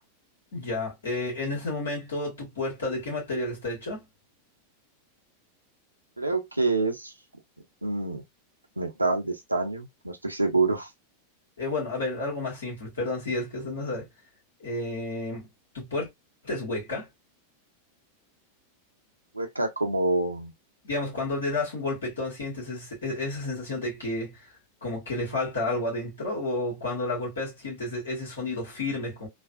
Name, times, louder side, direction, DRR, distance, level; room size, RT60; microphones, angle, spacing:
voice 1, 0.5-4.0 11.6-14.1 14.6-15.5 15.7-16.1 16.4-17.1 20.8-24.5 24.8-29.3, left 2 dB, 70° left, 1.7 m, -31 dB
voice 2, 6.2-7.1 7.8-8.2 8.8-10.9 19.3-20.5, right 2 dB, 85° right, 0.7 m, -27 dB
3.2 x 2.3 x 2.4 m
figure-of-eight pair, 90°, 0 cm